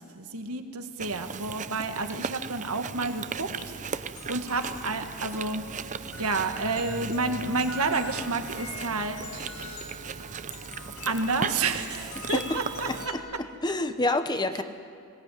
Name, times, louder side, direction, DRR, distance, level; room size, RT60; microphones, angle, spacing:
voice 1, 0.0-3.5 3.9-5.6 6.2-9.2 9.5-10.0 11.1-13.1, right 3 dB, 80° right, 6 dB, 1.7 m, -30 dB
Chewing mastication, 1.0-13.1, right 6 dB, 35° right, 0.6 m, -38 dB
sound 1, 3.0-13.2, left 1 dB, 70° left, 3.1 m, -43 dB
voice 2, 13.6-14.6, left 2 dB, 20° left, 9 dB, 0.9 m, -27 dB
21.0 x 18.0 x 9.3 m, 2.4 s
head